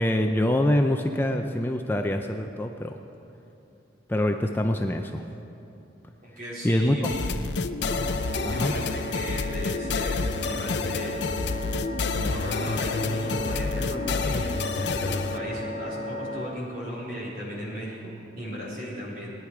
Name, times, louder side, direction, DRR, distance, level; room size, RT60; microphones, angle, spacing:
voice 1, 0.0-2.9 4.1-5.2 6.6-7.3 8.4-8.7, left 1 dB, 10° left, 4 dB, 0.4 m, -25 dB
voice 2, 6.2-7.4 8.3-11.2 12.1-19.3, equal, 50° right, -7 dB, 4.1 m, -36 dB
sound 1, 7.0-15.4, left 4 dB, 65° left, 0.5 m, -29 dB
sound 2, 7.8-16.5, left 1 dB, 30° left, 1.6 m, -35 dB
20.0 x 10.5 x 4.8 m, 2.9 s
head